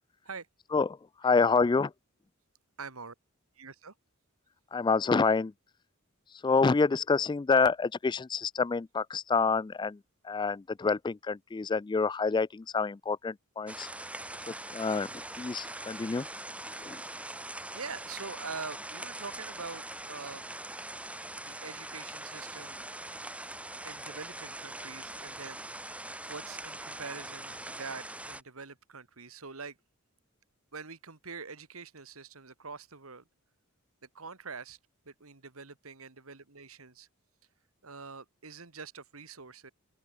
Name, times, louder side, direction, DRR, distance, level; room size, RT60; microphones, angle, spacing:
voice 1, 0.7-1.9 4.7-5.5 6.3-13.9 14.5-16.3 16.8-17.0, left 4 dB, 20° left, 0.3 m, -28 dB
voice 2, 2.8-3.1 3.6-3.9 17.0-17.3 17.7-20.5 21.4-22.8 23.8-26.0 26.3-29.8 30.7-33.2 34.1-34.8 35.1-37.1 37.8-39.7, right 5 dB, 85° right, 2.1 m, -44 dB
sound 1, 13.7-28.4, right 1 dB, 5° right, 2.8 m, -42 dB
open air
head